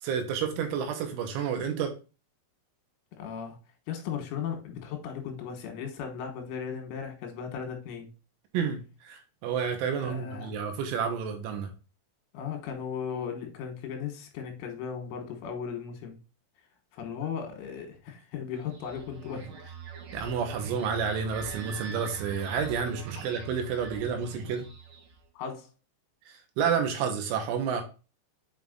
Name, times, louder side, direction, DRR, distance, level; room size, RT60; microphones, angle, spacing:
voice 1, 0.0-1.9 8.5-11.7 20.1-24.7 26.3-27.8, right 6 dB, 80° right, 5 dB, 3.4 m, -30 dB
voice 2, 3.2-3.6 3.9-8.1 10.0-10.5 12.3-16.2 16.9-19.5 25.4-25.7, left 7 dB, 80° left, 4 dB, 3.5 m, -36 dB
sound 1, 18.6-25.2, right 6 dB, 60° right, 3.3 m, -42 dB
7.8 x 5.4 x 2.5 m, 0.32 s
omnidirectional pair, 5.8 m